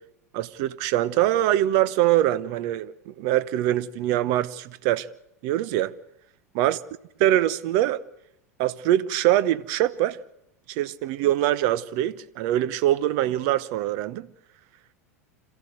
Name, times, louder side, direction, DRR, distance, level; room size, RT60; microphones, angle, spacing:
voice 1, 0.3-5.1 5.4-5.9 6.5-6.8 7.2-8.0 8.6-10.2 10.7-14.3, right 13 dB, 50° right, 0.9 m, -23 dB
26.5 x 15.0 x 7.9 m
figure-of-eight pair, 85°, 8 cm